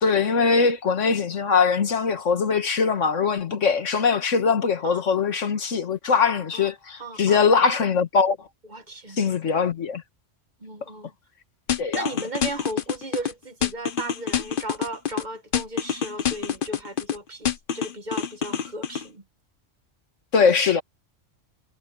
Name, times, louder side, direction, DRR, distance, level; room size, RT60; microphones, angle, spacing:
voice 1, 0.0-8.4 9.2-10.0 11.8-12.1 20.3-20.8, left 5 dB, 80° left, 1.8 m, -21 dB
voice 2, 7.0-7.5 8.7-9.2 10.6-11.1 11.9-19.2, right 2 dB, 40° right, 1.4 m, -36 dB
sound 1, 11.7-13.3 13.6-15.2 15.5-17.2 17.5-19.0, left 8 dB, 50° left, 1.0 m, -26 dB
omnidirectional pair, 1.3 m